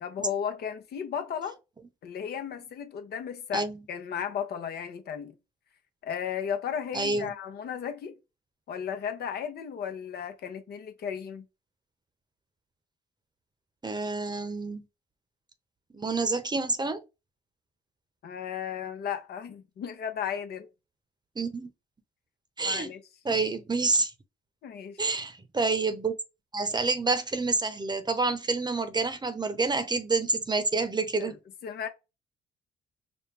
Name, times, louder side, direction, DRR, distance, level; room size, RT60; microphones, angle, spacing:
voice 1, 0.0-1.6 2.0-5.3 6.0-8.1 8.7-11.4 18.2-20.7 22.6-23.0 23.3-23.4 24.6-25.1 31.2-31.4 31.6-31.9, left 8 dB, 65° left, 0.9 m, -35 dB
voice 2, 6.9-7.3 13.8-14.8 15.9-17.0 21.4-21.7 22.6-22.9 23.2-24.1 25.0-26.1 26.5-31.3, right 3 dB, 25° right, 0.8 m, -28 dB
5.1 x 2.1 x 3.4 m
supercardioid pair, 65°, 18 cm